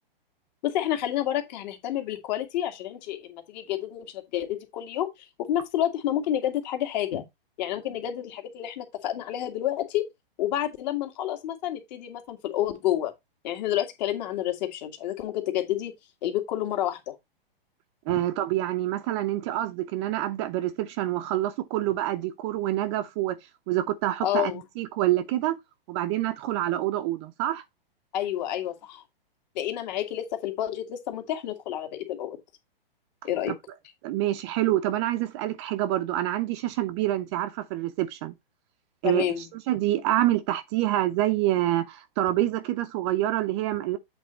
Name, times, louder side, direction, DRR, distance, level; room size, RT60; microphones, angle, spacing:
voice 1, 0.6-5.1 5.4-7.2 7.6-10.1 10.4-13.1 13.4-15.9 16.2-17.2 24.2-24.6 28.1-29.0 29.6-32.4 33.2-33.5 39.0-39.5, left 12 dB, 45° left, 2.0 m, -29 dB
voice 2, 18.1-23.4 23.7-25.6 25.9-27.6 33.5-33.6 34.0-38.3 39.0-39.2 39.7-44.0, right 14 dB, 30° right, 0.6 m, -27 dB
8.0 x 3.9 x 4.4 m
hypercardioid pair, 140°, 29 cm